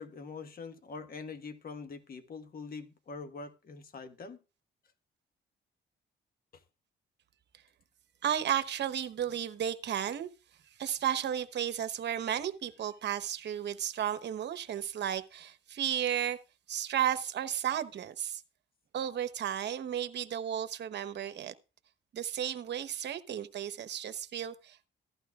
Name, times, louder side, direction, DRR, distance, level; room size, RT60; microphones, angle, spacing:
voice 1, 0.0-4.4 6.5-6.6, left 4 dB, 50° left, 1.3 m, -44 dB
voice 2, 8.2-10.3 10.8-16.4 16.7-18.4 18.9-21.5 22.1-24.9, right 10 dB, 60° right, 1.0 m, -33 dB
15.5 x 12.0 x 2.4 m
cardioid pair, 90°, 20 cm